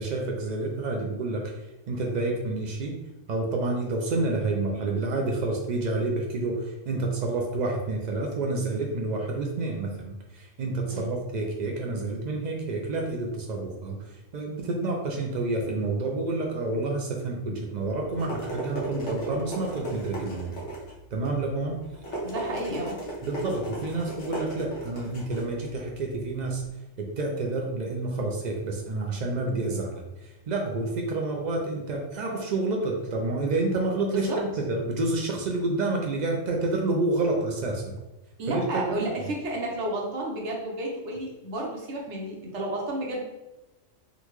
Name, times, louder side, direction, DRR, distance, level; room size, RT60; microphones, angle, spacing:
voice 1, 0.0-1.6 1.9-3.0 3.3-20.6 21.1-21.8 23.2-26.6 27.0-37.9 38.5-39.0, right 2 dB, 85° right, 0 dB, 0.3 m, -29 dB
sound 1, 18.0-26.7, right 1 dB, 65° left, 1.3 m, -37 dB
voice 2, 22.2-22.9 34.1-34.4 38.4-43.2, right 1 dB, 65° right, -2 dB, 1.0 m, -31 dB
3.7 x 2.2 x 3.0 m, 1.0 s
omnidirectional pair, 1.3 m